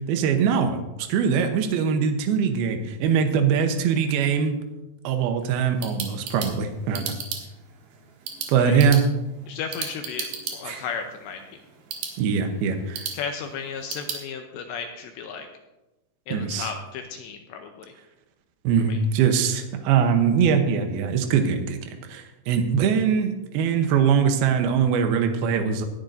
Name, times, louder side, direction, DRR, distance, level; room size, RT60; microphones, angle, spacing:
voice 1, 0.1-4.6 5.0-7.1 8.5-9.0 12.2-13.1 16.3-16.7 18.6-25.9, right 7 dB, 80° right, 6 dB, 2.3 m, -22 dB
sound 1, 5.5-14.2, right 6 dB, 65° right, 2.7 m, -37 dB
voice 2, 9.5-11.4 13.1-15.5 16.3-17.9 18.9-19.0, left 6 dB, 80° left, 5 dB, 2.7 m, -34 dB
19.5 x 10.5 x 2.7 m, 1.0 s
omnidirectional pair, 5.6 m